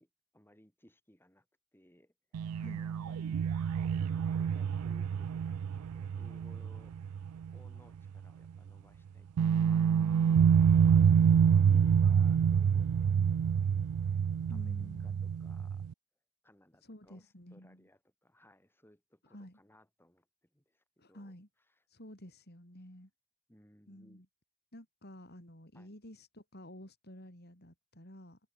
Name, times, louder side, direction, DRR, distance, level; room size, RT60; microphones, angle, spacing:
voice 1, 0.0-1.5 1.7-3.7 4.4-7.0 7.5-10.5 10.8-11.1 11.4-15.8 16.4-21.8 23.5-24.2 25.7-25.9, left 1 dB, 10° left, 6.5 m, -64 dB
sound 1, 2.3-7.8 8.1-8.2 9.4-15.9, right 7 dB, 80° right, 0.4 m, -27 dB
voice 2, 14.5-15.2 16.8-17.8 19.3-19.6 21.0-21.5 21.9-23.1 23.9-24.3 24.7-28.4, equal, 45° left, 6.7 m, -51 dB
open air
head